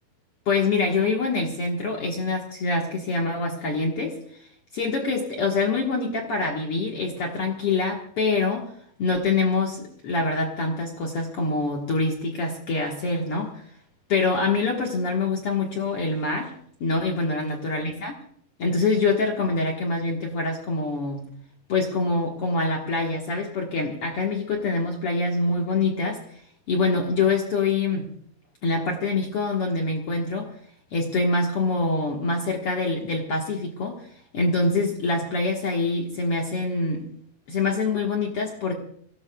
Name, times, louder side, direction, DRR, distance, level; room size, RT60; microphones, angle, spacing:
voice 1, 0.4-4.2 4.7-8.7 9.0-13.5 14.1-16.5 16.8-18.1 18.6-21.2 21.7-26.2 26.7-28.0 28.6-30.5 30.9-34.1 34.3-37.0 37.5-38.7, left 3 dB, 65° left, 0 dB, 1.4 m, -25 dB
25.0 x 17.5 x 2.3 m, 0.63 s
omnidirectional pair, 4.8 m